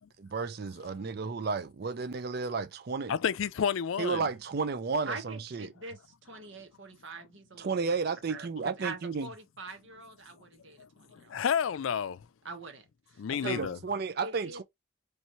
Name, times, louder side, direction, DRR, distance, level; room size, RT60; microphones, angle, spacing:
voice 1, 0.2-3.1 4.0-5.7 7.6-9.3 13.3-14.6, right 4 dB, 50° right, 0.5 m, -33 dB
voice 2, 3.1-4.3 11.1-12.2 13.2-13.8, left 7 dB, 85° left, 0.4 m, -30 dB
voice 3, 5.1-8.0 8.3-11.3 12.4-13.8 14.2-14.6, right 3 dB, 70° right, 1.3 m, -44 dB
3.3 x 3.1 x 4.0 m
head